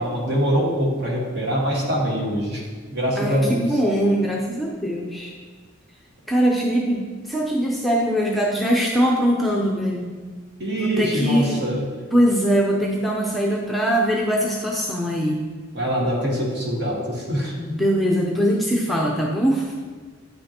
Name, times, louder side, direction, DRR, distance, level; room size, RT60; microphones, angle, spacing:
voice 1, 0.0-3.8 10.6-11.9 15.7-17.5, equal, 55° right, -2 dB, 1.5 m, -24 dB
voice 2, 3.2-5.3 6.3-10.2 10.7-11.6 12.1-15.4 17.6-19.7, equal, ahead, -2 dB, 0.5 m, -22 dB
9.3 x 5.4 x 2.9 m, 1.5 s
head